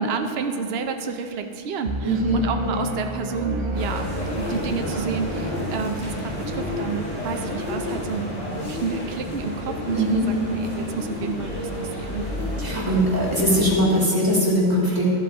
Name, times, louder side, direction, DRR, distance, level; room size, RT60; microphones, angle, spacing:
voice 1, 0.0-4.1 4.4-8.3 8.7-12.2, right 5 dB, 60° right, 6 dB, 0.9 m, -30 dB
sound 1, 1.8-4.8, right 1 dB, 40° right, 0.4 m, -31 dB
voice 2, 2.0-2.4 9.9-10.3 12.6-15.1, equal, 15° right, -6 dB, 2.0 m, -21 dB
sound 2, 2.3-2.8 3.2-3.8 4.1-4.9 5.2-5.9 6.3-7.1 7.4-8.2 8.5-9.3 9.7-10.4 10.9-11.6 12.2-12.8 13.4-14.2, left 5 dB, 60° left, 0.8 m, -36 dB
sound 3, 3.7-13.6, equal, 85° left, 3.1 m, -31 dB
13.5 x 7.5 x 4.0 m, 2.6 s
omnidirectional pair, 1.2 m